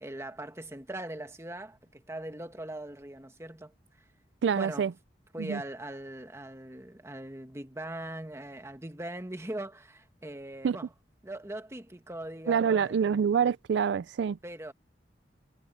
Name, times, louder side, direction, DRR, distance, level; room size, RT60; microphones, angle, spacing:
voice 1, 0.0-4.0 4.5-4.9 5.3-10.9 11.2-13.1 14.4-14.7, right 1 dB, 15° right, 1.5 m, -41 dB
voice 2, 4.4-4.9 5.4-5.6 10.6-10.8 12.5-14.4, right 7 dB, 85° right, 0.4 m, -26 dB
head